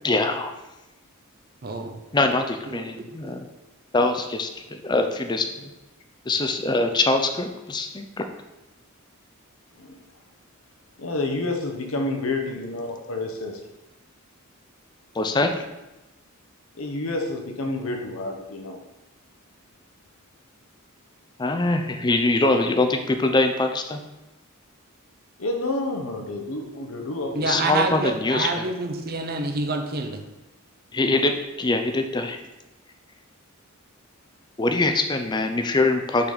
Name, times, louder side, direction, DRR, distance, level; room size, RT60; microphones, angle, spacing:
voice 1, 0.0-0.5 2.1-3.4 3.9-5.7 6.3-8.2 15.1-15.6 21.4-24.0 27.4-28.6 30.9-32.4 34.6-36.3, left 2 dB, 20° left, 6 dB, 0.5 m, -23 dB
voice 2, 1.6-2.0 2.7-3.4 27.3-30.2, right 3 dB, 45° right, 5 dB, 0.7 m, -28 dB
voice 3, 11.0-13.6 16.8-18.8 25.4-27.7, left 2 dB, 65° left, 3 dB, 0.9 m, -29 dB
5.7 x 4.0 x 5.0 m, 1.0 s
head